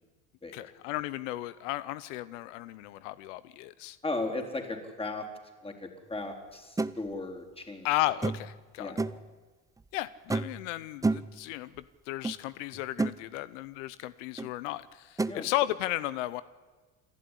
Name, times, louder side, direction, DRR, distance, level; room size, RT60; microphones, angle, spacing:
voice 1, 0.5-4.0 7.8-8.9 9.9-16.4, left 15 dB, 85° left, 16 dB, 0.8 m, -34 dB
voice 2, 4.0-5.3 5.6-7.9 8.8-9.2 15.3-15.5, left 2 dB, 15° left, 3 dB, 3.9 m, -36 dB
sound 1, 6.8-6.9 8.2-8.6 9.0-9.3 10.3-10.6 11.0-11.4 12.2-12.4 12.7-13.2 14.4-14.5 15.2-15.4, right 3 dB, 10° right, 0.7 m, -30 dB
28.5 x 12.0 x 10.0 m, 1.4 s
supercardioid pair, 90°, 36 cm